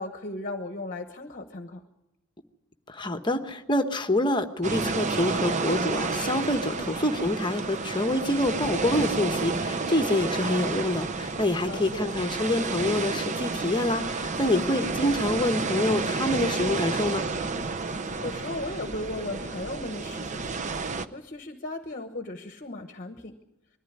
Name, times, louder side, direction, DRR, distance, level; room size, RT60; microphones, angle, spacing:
voice 1, 0.0-1.8 6.7-6.9 11.6-12.1 14.5-14.6 17.9-20.8 21.1-23.4, left 2 dB, 40° left, 6 dB, 1.1 m, -37 dB
voice 2, 2.9-17.3, left 1 dB, 20° left, 7 dB, 1.1 m, -26 dB
sound 1, 4.6-21.1, right 4 dB, 35° right, 0.7 m, -30 dB
21.5 x 14.5 x 9.6 m, 0.92 s
head